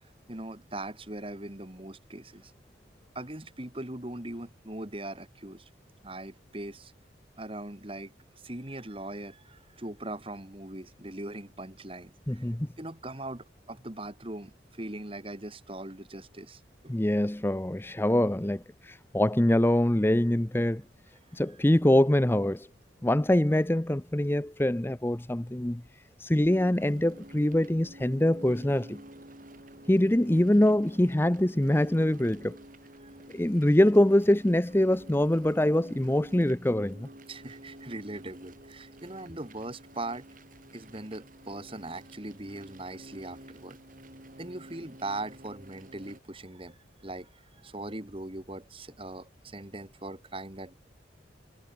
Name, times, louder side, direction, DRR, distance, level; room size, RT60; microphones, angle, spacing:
voice 1, 0.3-2.5 3.1-5.7 6.0-6.9 7.4-12.5 12.8-16.9 21.3-21.4 33.0-33.1 37.3-40.2 40.7-43.8 44.4-50.7, right 2 dB, 30° right, 2.1 m, -40 dB
voice 2, 12.3-12.7 16.9-20.8 21.3-22.7 23.0-25.8 26.2-29.0 29.9-32.6 33.3-37.1, left 1 dB, 10° left, 0.6 m, -24 dB
sound 1, 26.5-46.2, right 1 dB, 45° right, 5.2 m, -50 dB
head